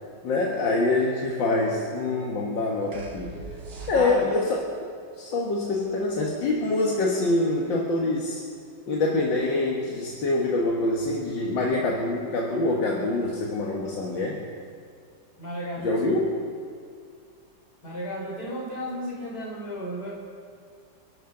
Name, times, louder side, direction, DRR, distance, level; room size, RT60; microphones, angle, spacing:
voice 1, 0.2-3.4 3.9-4.6 5.2-8.4 8.9-14.4 15.8-16.3, left 2 dB, 80° left, -2 dB, 2.2 m, -25 dB
sound 1, 2.9-4.5, right 3 dB, 50° right, 2.2 m, -40 dB
voice 2, 3.9-4.4 15.4-16.2 17.8-20.2, equal, 55° left, -4 dB, 4.8 m, -34 dB
28.0 x 12.0 x 3.8 m, 2.2 s
omnidirectional pair, 2.0 m